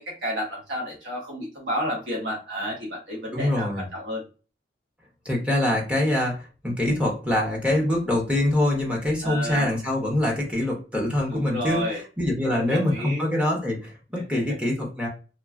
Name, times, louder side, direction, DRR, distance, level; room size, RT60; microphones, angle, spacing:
voice 1, 0.0-4.2 9.2-9.7 11.3-12.0 12.5-13.2, equal, 75° right, -4 dB, 1.0 m, -31 dB
voice 2, 3.3-3.9 5.2-15.1, left 1 dB, 5° right, -2 dB, 0.7 m, -24 dB
2.9 x 2.3 x 2.3 m, 0.35 s
head